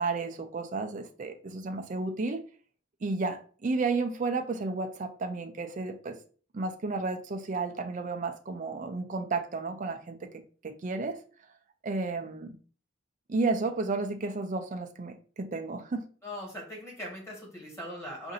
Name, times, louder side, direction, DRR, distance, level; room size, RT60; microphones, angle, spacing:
voice 1, 0.0-2.4 3.0-6.2 6.5-10.2 10.6-11.2 11.8-12.6 13.3-16.0, right 3 dB, 45° right, 6 dB, 0.5 m, -32 dB
voice 2, 16.2-18.3, equal, 15° left, -2 dB, 1.6 m, -40 dB
4.9 x 2.6 x 2.6 m, 0.41 s
head